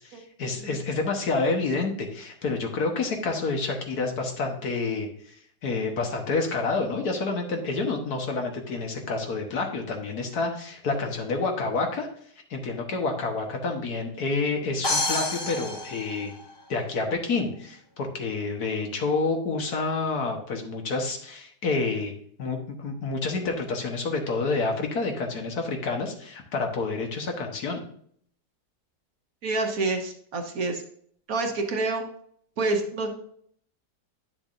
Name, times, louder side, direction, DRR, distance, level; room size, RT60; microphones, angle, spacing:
voice 1, 0.0-5.1 5.6-12.1 12.5-16.3 16.7-22.1 22.4-27.8, left 3 dB, 65° left, 3 dB, 1.7 m, -28 dB
sound 1, 14.8-16.8, left 2 dB, 25° left, 0.5 m, -29 dB
voice 2, 29.4-30.8 31.3-32.0 32.6-33.1, right 3 dB, 60° right, 3 dB, 1.5 m, -27 dB
10.0 x 6.9 x 2.6 m, 0.62 s
omnidirectional pair, 1.8 m